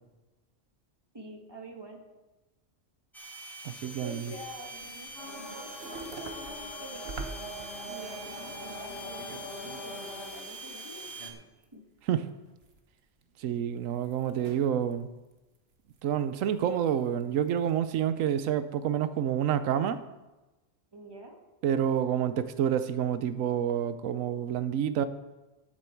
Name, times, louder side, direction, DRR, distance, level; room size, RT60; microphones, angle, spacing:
voice 1, 1.1-2.0 4.0-7.2 7.8-11.4 11.7-11.8 20.9-21.4, right 1 dB, 20° right, 2 dB, 1.6 m, -47 dB
sound 1, 3.1-11.3, equal, ahead, 1.3 m, -44 dB
voice 2, 3.6-4.3 12.1-12.2 13.4-15.1 16.0-20.0 21.6-25.1, right 9 dB, 90° right, 12 dB, 1.0 m, -28 dB
sound 2, 3.8-9.9 10.1-11.6 12.0-12.1 12.5-13.0 13.2-14.9 15.3-16.0 16.4-17.2 17.5-18.0, right 3 dB, 55° right, 1.3 m, -47 dB
sound 3, 5.1-10.3, equal, 75° left, 4.0 m, -43 dB
13.5 x 8.7 x 4.5 m, 1.1 s
omnidirectional pair, 1.3 m